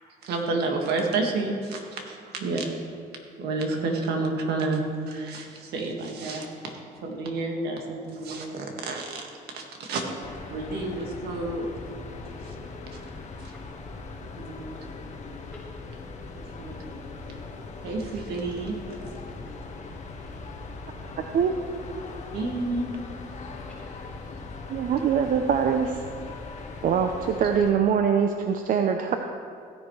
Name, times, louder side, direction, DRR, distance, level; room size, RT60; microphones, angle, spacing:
voice 1, 0.2-2.7 3.4-4.8 5.1-6.7 7.0-9.3 9.5-10.0 10.5-11.7 12.9-13.0 14.4-14.8 16.6-16.8 17.8-18.8 22.3-22.9, right 3 dB, 70° right, 2 dB, 1.8 m, -30 dB
sound 1, 10.2-27.7, left 3 dB, 45° left, 1.5 m, -40 dB
voice 2, 11.8-13.1 13.5-13.7 15.2-16.0 16.3-20.8 23.0-24.1, left 1 dB, 5° right, -10 dB, 3.3 m, -55 dB
voice 3, 24.7-26.0 26.8-29.2, right 7 dB, 55° right, 5 dB, 0.6 m, -23 dB
16.0 x 10.0 x 3.2 m, 2.3 s
cardioid pair, 110°, 17 cm